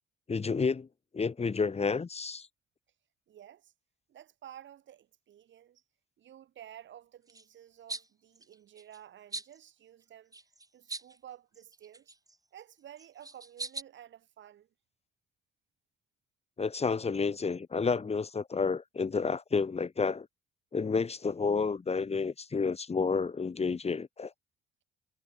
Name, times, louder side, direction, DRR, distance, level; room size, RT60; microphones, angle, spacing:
voice 1, 0.3-0.9 1.1-2.5 16.6-20.3 20.7-24.3, left 5 dB, 30° left, 2.2 m, -30 dB
voice 2, 3.3-3.7 4.1-5.8 6.2-10.4 10.7-12.1 12.5-14.7, right 11 dB, 70° right, 6.2 m, -52 dB
sound 1, 7.3-7.5 7.9-8.1 8.3-9.0 9.3-9.6 10.3-11.2 11.5-12.4 13.0-13.8, right 2 dB, 15° right, 5.3 m, -41 dB
cardioid pair, 90°, 20 cm